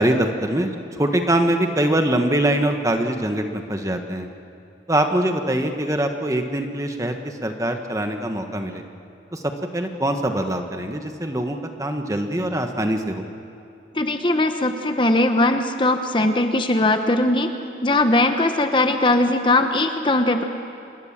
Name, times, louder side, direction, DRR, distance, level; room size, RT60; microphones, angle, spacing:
voice 1, 0.0-4.3 4.9-8.8 9.3-13.2, right 1 dB, 20° right, 5 dB, 1.3 m, -23 dB
voice 2, 13.9-17.5 17.8-20.4, left 2 dB, 25° left, 6 dB, 1.0 m, -19 dB
26.5 x 21.5 x 7.4 m, 2.6 s
head